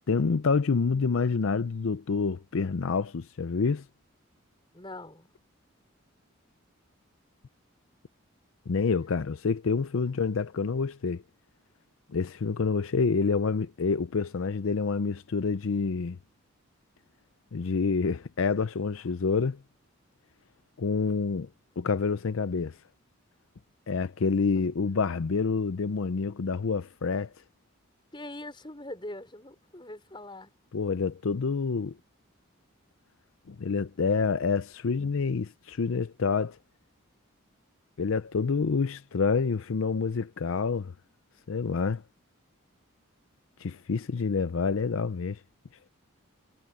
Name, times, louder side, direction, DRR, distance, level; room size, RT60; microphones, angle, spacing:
voice 1, 0.1-3.8 8.7-11.2 12.1-16.2 17.5-19.6 20.8-21.5 21.8-22.8 23.9-27.3 30.7-32.0 33.5-36.6 38.0-40.9 41.5-42.0 43.6-45.4, left 4 dB, 70° left, 0.5 m, -27 dB
voice 2, 4.7-5.3 24.6-24.7 28.1-30.5, left 1 dB, 20° left, 5.2 m, -42 dB
head